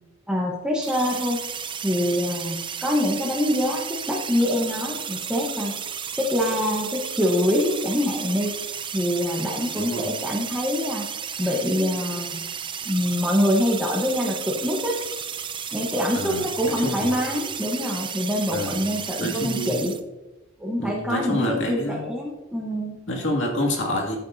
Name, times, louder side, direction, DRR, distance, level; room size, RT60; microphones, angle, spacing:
voice 1, 0.3-1.4 1.8-5.8 6.2-8.6 8.9-11.1 11.4-12.4 12.8-15.0 15.7-19.9 20.6-22.9, left 1 dB, 5° right, -2 dB, 1.1 m, -25 dB
sound 1, 0.8-20.0, right 7 dB, 25° right, 0.5 m, -33 dB
voice 2, 9.7-10.1 16.2-17.2 18.5-18.8 19.2-19.9 20.8-22.0 23.1-24.2, left 1 dB, 65° left, 0 dB, 2.4 m, -28 dB
13.5 x 8.6 x 2.7 m, 1.1 s
head